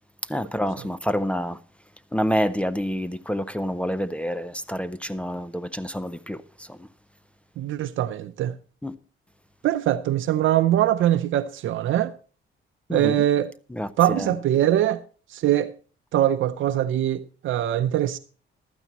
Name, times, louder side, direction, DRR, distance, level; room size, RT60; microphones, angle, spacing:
voice 1, 0.3-1.6 2.1-6.9 8.8-9.0 12.9-13.3 13.7-14.4, equal, 5° left, 0.4 m, -28 dB
voice 2, 7.6-8.6 9.6-12.1 12.9-13.5 14.0-15.0 15.3-15.7 16.1-18.2, right 12 dB, 75° right, 0.6 m, -22 dB
15.0 x 12.5 x 3.0 m
cardioid pair, 140°, 20 cm